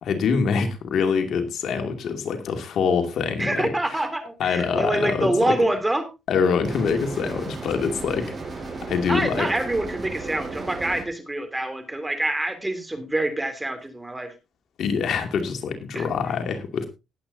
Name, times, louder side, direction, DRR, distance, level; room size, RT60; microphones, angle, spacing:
voice 1, 0.0-4.1 4.4-5.6 6.3-8.3 8.9-9.5 14.8-16.9, left 6 dB, 70° left, 6 dB, 2.4 m, -25 dB
voice 2, 3.4-6.1 9.1-14.3 15.9-16.1, right 1 dB, 15° right, 9 dB, 3.1 m, -26 dB
sound 1, 6.6-11.0, right 3 dB, 30° right, 6.2 m, -34 dB
19.5 x 8.6 x 2.7 m, 0.26 s
cardioid pair, 90°, 0 cm